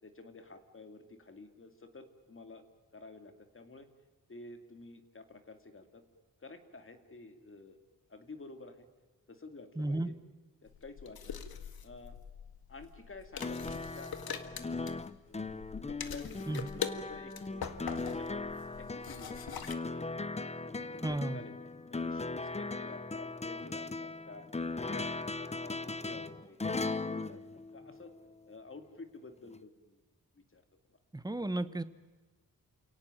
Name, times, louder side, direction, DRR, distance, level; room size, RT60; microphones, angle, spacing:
voice 1, 0.0-2.6 2.9-3.9 4.3-6.0 6.4-7.8 8.1-8.9 9.3-10.1 10.6-11.5 11.8-12.2 12.7-14.5 15.3-18.5 18.8-19.4 19.7-19.8 20.4-20.6 20.9-21.5 21.9-24.5 24.8-28.1 28.5-30.0 30.5-30.6, left 3 dB, 35° left, 8 dB, 2.4 m, -51 dB
voice 2, 9.8-10.1 16.5-16.7 21.0-21.4 31.1-31.8, right 1 dB, 10° right, 13 dB, 1.1 m, -33 dB
sound 1, 10.7-19.7, left 7 dB, 80° left, 1.9 m, -43 dB
sound 2, 13.4-28.3 29.6-29.7, left 3 dB, 20° left, 0.8 m, -39 dB
29.0 x 18.0 x 9.0 m, 1.3 s
wide cardioid pair, 155°, 36 cm